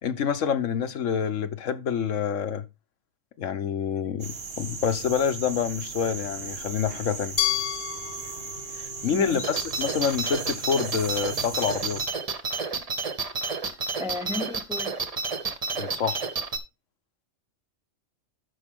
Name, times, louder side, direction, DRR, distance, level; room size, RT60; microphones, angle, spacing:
voice 1, 0.0-2.6 3.4-7.4 8.7-12.0 15.8-16.3, left 7 dB, 90° left, 1.3 m, -27 dB
sound 1, 4.2-12.1, right 4 dB, 55° right, 1.3 m, -37 dB
Glass, 7.4-10.3, left 11 dB, 45° left, 1.1 m, -32 dB
voice 2, 9.1-9.5 14.0-14.9, left 1 dB, 5° right, 0.5 m, -33 dB
sound 2, 9.4-16.6, right 4 dB, 35° right, 0.9 m, -30 dB
13.5 x 5.5 x 3.7 m
omnidirectional pair, 1.3 m